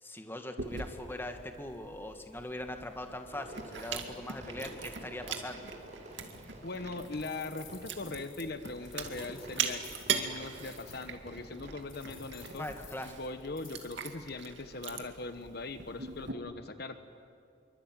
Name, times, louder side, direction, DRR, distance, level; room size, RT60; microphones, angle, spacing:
voice 1, 0.0-5.7 12.6-13.2, left 1 dB, 10° left, 6 dB, 1.7 m, -41 dB
Chewing mastication, 0.6-16.3, right 6 dB, 70° right, 2.4 m, -41 dB
Fireworks, 3.3-12.9, right 1 dB, 35° right, 6.4 m, -50 dB
voice 2, 6.6-9.8 10.1-12.6 13.0-17.0, left 3 dB, 55° left, 9 dB, 1.1 m, -40 dB
sound 1, 7.0-11.1 11.9-14.0, left 10 dB, 90° left, 4.3 m, -55 dB
26.0 x 24.0 x 9.1 m, 2.5 s
head